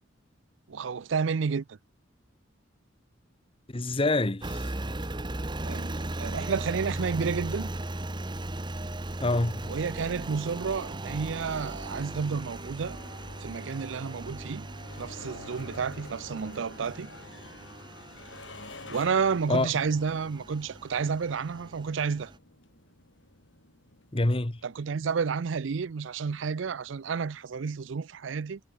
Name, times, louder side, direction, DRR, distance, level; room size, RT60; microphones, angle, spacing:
voice 1, 0.7-1.8 5.6-7.7 9.7-13.0 13.4-14.7 15.0-17.1 18.9-22.3 24.6-28.6, right 5 dB, 70° right, 0.5 m, -31 dB
voice 2, 3.7-4.7 9.2-9.6 19.5-19.7 24.1-24.6, left 2 dB, 30° left, 1.1 m, -26 dB
Engine, 4.4-22.4, right 1 dB, 25° right, 1.2 m, -38 dB
sound 1, 11.1-27.9, left 2 dB, 65° left, 4.1 m, -51 dB
head